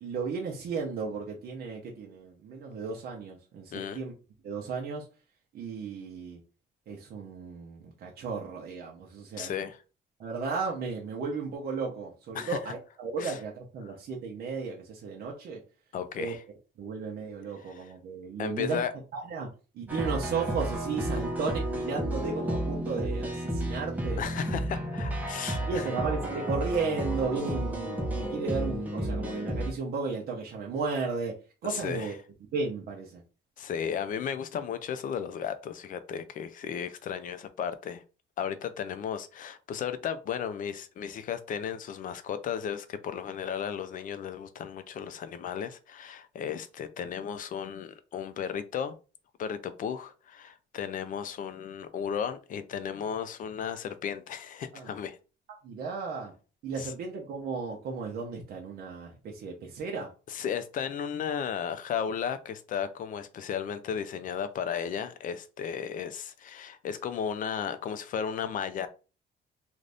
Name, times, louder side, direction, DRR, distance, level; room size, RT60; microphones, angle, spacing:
voice 1, 0.0-4.1 4.4-5.1 5.5-6.4 6.9-9.6 10.2-15.6 16.2-16.4 16.8-18.8 19.1-19.5 19.7-24.2 25.6-31.3 31.6-32.1 32.5-33.2 54.7-54.9 55.6-56.3 56.6-60.1, right 4 dB, 55° right, 0.7 m, -34 dB
voice 2, 9.4-9.8 12.3-12.6 13.2-13.4 15.9-16.4 17.6-17.9 18.4-18.9 24.2-25.9 31.6-32.1 33.6-38.0 38.4-48.9 49.4-55.2 56.8-56.9 60.3-68.9, left 8 dB, 45° left, 0.4 m, -34 dB
sound 1, 19.9-29.7, right 1 dB, 10° right, 0.7 m, -32 dB
2.6 x 2.5 x 3.3 m
cardioid pair, 160°, 19 cm